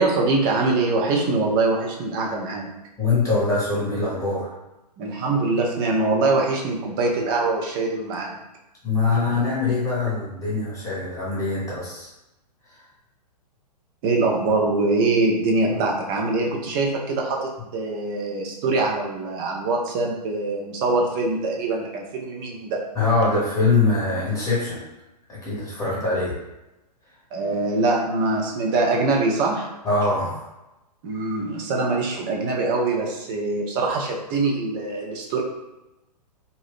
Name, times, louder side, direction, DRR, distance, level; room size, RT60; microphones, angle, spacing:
voice 1, 0.0-2.7 5.0-8.4 14.0-22.8 27.3-29.7 31.0-35.4, right 3 dB, 30° right, -1 dB, 0.6 m, -23 dB
voice 2, 3.0-4.5 8.8-12.1 12.7-12.8 22.9-24.8 25.3-26.4 29.8-30.4, left 3 dB, 15° left, -7 dB, 1.1 m, -23 dB
2.7 x 2.2 x 3.5 m, 0.97 s
figure-of-eight pair, 115°, 21 cm